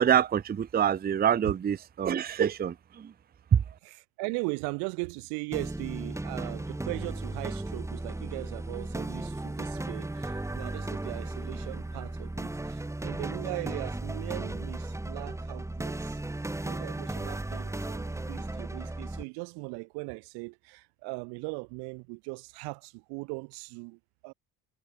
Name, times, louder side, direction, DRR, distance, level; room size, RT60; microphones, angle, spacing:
voice 1, 0.0-3.1 3.5-3.6, right 9 dB, 25° right, 0.5 m, -25 dB
voice 2, 3.8-16.2 16.6-24.3, right 33 dB, 85° right, 1.3 m, -39 dB
sound 1, 5.5-19.2, right 2 dB, 10° right, 0.8 m, -35 dB
supercardioid pair, 65°, 38 cm